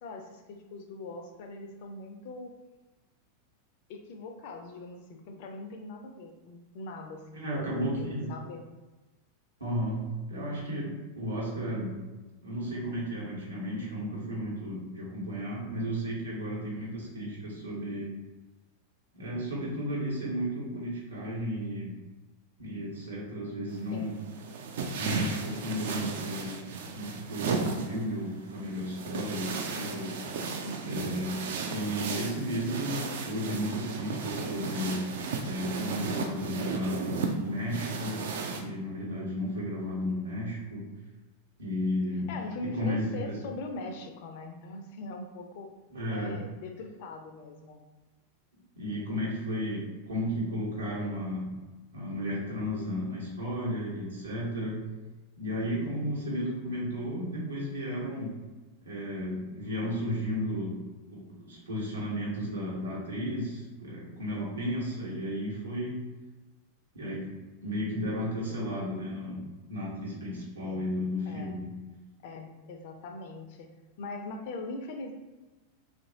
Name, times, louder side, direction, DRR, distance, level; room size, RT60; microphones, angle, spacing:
voice 1, 0.0-2.5 3.9-8.6 23.9-24.1 30.6-31.1 42.3-45.7 46.1-47.8 55.6-56.1 70.6-71.0 71.3-71.6 72.2-73.7 74.0-75.1, left 2 dB, 50° left, 4 dB, 0.4 m, -41 dB
voice 2, 7.3-8.3 9.6-12.0 12.4-18.1 19.1-22.0 22.6-24.1 25.0-26.6 27.0-30.2 30.8-31.4 31.7-35.1 35.4-38.2 38.5-40.9 41.6-42.3 42.6-43.4 45.9-46.4 48.7-51.5 51.9-54.8 55.4-58.3 58.8-66.0 66.9-67.3 67.6-71.7, equal, 75° right, -6 dB, 1.1 m, -34 dB
sound 1, 23.7-38.6, right 4 dB, 55° right, 0.4 m, -35 dB
2.9 x 2.5 x 2.7 m, 1.2 s
figure-of-eight pair, 90°, 0 cm